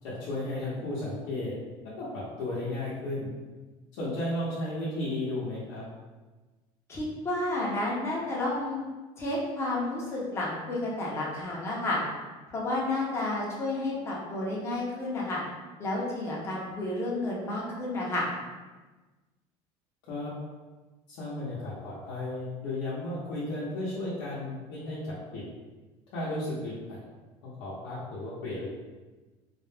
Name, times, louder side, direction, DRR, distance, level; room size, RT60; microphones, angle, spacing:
voice 1, 0.0-1.5 2.0-3.3 3.9-5.8 20.1-20.3 21.1-25.4 26.1-27.0 27.4-28.7, left 1 dB, 90° left, -9 dB, 0.8 m, -34 dB
voice 2, 6.9-8.8 9.2-12.0 12.5-15.4 15.8-18.2, left 2 dB, 20° left, -5 dB, 0.7 m, -31 dB
2.4 x 2.0 x 3.3 m, 1.2 s
cardioid pair, 155°, 12 cm